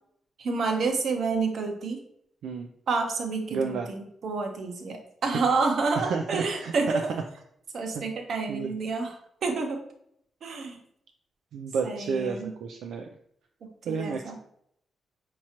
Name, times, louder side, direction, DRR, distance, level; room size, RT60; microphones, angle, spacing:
voice 1, 0.4-2.0 2.9-7.1 7.7-9.8 10.4-10.8 11.8-12.5 13.9-14.4, right 4 dB, 65° right, 4 dB, 0.8 m, -29 dB
voice 2, 3.5-3.9 5.9-7.0 7.9-8.0 8.5-8.7 11.5-13.1 13.8-14.3, right 5 dB, 85° right, 3 dB, 0.3 m, -31 dB
4.7 x 2.9 x 2.8 m, 0.70 s
cardioid pair, 95°, 0 cm